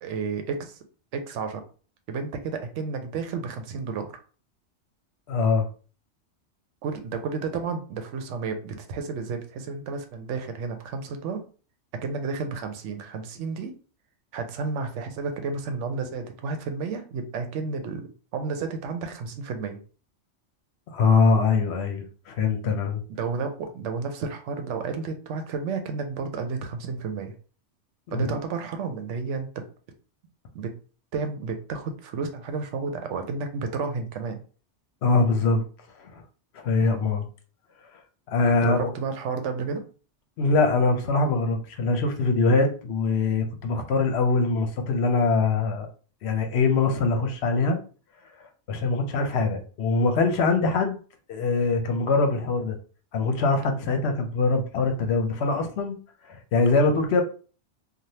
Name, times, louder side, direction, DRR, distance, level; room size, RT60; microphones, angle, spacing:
voice 1, 0.0-0.8 1.1-1.6 2.1-4.2 6.8-11.4 12.0-13.7 14.3-19.8 23.2-27.3 28.1-29.6 30.5-30.7 31.1-34.4 36.8-37.1 38.6-39.8, right 4 dB, 85° right, 6 dB, 0.9 m, -31 dB
voice 2, 5.3-5.7 20.9-23.0 28.1-28.3 35.0-35.6 36.0-36.2 36.5-37.2 38.3-38.9 40.4-45.9 46.2-47.8 48.7-51.0 51.3-52.8 53.1-56.0 56.2-57.2, left 3 dB, 70° left, 5 dB, 0.8 m, -23 dB
3.2 x 2.3 x 2.7 m, 0.39 s
omnidirectional pair, 1.2 m